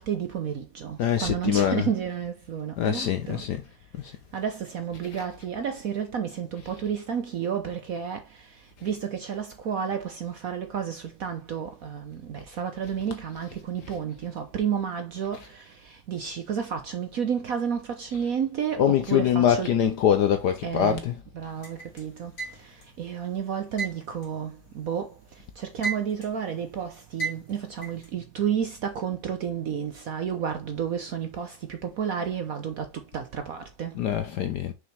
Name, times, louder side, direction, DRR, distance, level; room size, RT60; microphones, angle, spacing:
voice 1, 0.0-3.5 4.3-19.8 20.6-21.1 21.3-34.0, right 8 dB, 60° right, 1.0 m, -31 dB
voice 2, 1.0-1.8 2.8-3.6 4.0-4.1 5.1-5.2 18.1-18.2 18.8-21.2 33.9-34.7, left 9 dB, 65° left, 1.1 m, -24 dB
sound 1, 21.6-22.9 23.8-25.2 25.5-26.4 27.2-28.1, right 4 dB, 45° left, 3.0 m, -34 dB
6.1 x 5.6 x 3.2 m
omnidirectional pair, 2.2 m